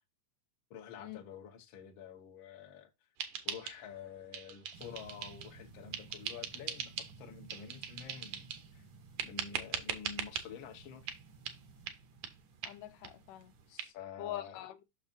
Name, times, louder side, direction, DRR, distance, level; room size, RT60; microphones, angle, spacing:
voice 1, 0.7-2.9 3.4-8.9 9.2-11.0 13.7-14.6, left 8 dB, 55° left, 1.5 m, -49 dB
sound 1, 3.2-4.0 4.3-5.5 5.9-7.1 7.5-8.7 9.2-10.5 11.1-11.2 11.5-11.6 11.9-12.0 12.2-12.3 12.6-12.7 13.0-13.1 13.4-13.5 13.8-13.9, right 9 dB, 75° right, 2.4 m, -40 dB
sound 2, 4.7-13.7, right 4 dB, 50° right, 1.5 m, -57 dB
voice 2, 12.6-13.5 14.2-14.8, left 12 dB, 90° left, 2.3 m, -43 dB
6.9 x 6.5 x 2.6 m
omnidirectional pair, 3.6 m